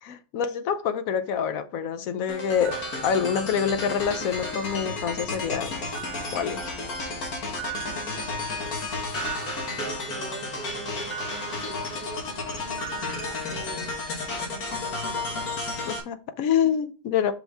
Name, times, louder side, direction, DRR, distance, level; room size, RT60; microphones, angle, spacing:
voice 1, 0.0-2.8 3.0-5.8 6.3-6.6 15.9-17.3, left 7 dB, 75° left, 0.8 m, -26 dB
sound 1, 2.3-16.0, left 3 dB, 55° left, 1.8 m, -32 dB
sound 2, 2.6-3.9 4.3-5.1 5.9-7.2 7.6-10.5 11.1-12.5 12.8-14.1, right 13 dB, 70° right, 0.4 m, -42 dB
voice 2, 7.9-8.9 9.7-15.5 16.4-16.5, right 5 dB, 40° right, 0.8 m, -43 dB
6.0 x 5.3 x 3.4 m
omnidirectional pair, 2.0 m